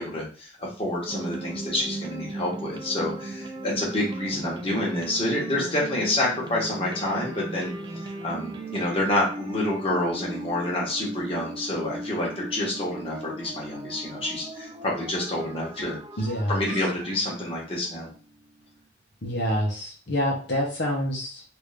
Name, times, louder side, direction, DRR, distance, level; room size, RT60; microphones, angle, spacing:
voice 1, 0.0-7.7 8.0-16.0 16.5-18.1, left 1 dB, 30° left, -4 dB, 1.2 m, -28 dB
sound 1, 1.1-18.8, right 1 dB, 25° right, 0.4 m, -38 dB
voice 2, 16.2-16.5 19.2-21.4, equal, 65° left, -2 dB, 0.8 m, -27 dB
3.3 x 2.6 x 3.3 m, 0.39 s
head